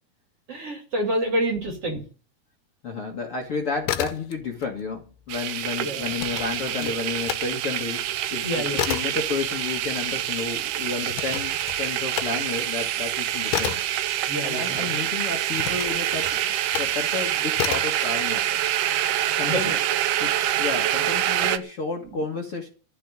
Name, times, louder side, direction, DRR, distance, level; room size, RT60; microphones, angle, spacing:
voice 1, 0.5-2.0 5.8-6.1 6.8-6.9 8.4-8.8 14.3-14.9 19.5-19.8, right 1 dB, 40° right, 3.3 m, -28 dB
voice 2, 2.8-13.8 14.4-18.6 19.4-19.8 20.2-20.3 20.6-22.7, left 4 dB, 45° left, 2.2 m, -31 dB
sound 1, 3.7-4.7 5.0-7.5 7.9-14.9 15.5-17.0 17.5-18.0, left 12 dB, 85° left, 2.8 m, -32 dB
sound 2, 5.3-21.6, right 12 dB, 80° right, 2.7 m, -26 dB
14.5 x 6.2 x 9.7 m
omnidirectional pair, 4.5 m